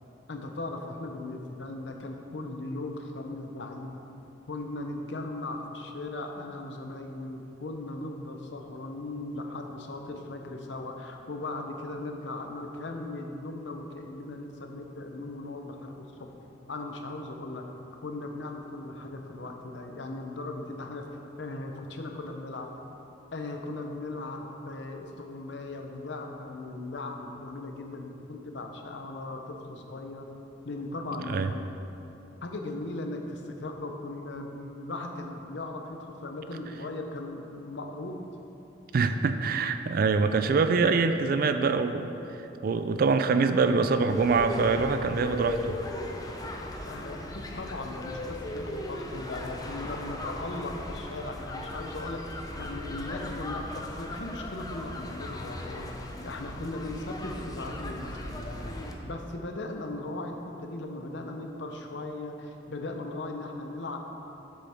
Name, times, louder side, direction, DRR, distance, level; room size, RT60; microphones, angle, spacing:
voice 1, 0.3-3.9 4.5-16.3 16.7-17.7 18.0-21.0 21.4-22.7 23.3-30.3 30.6-31.6 32.4-38.3 46.9-58.7 59.0-64.0, left 2 dB, 75° left, 3 dB, 0.7 m, -38 dB
voice 2, 38.9-45.8, right 4 dB, 55° right, 9 dB, 0.4 m, -25 dB
sound 1, 44.1-58.9, left 1 dB, 20° left, 0.6 m, -38 dB
7.7 x 6.9 x 3.5 m, 2.9 s
head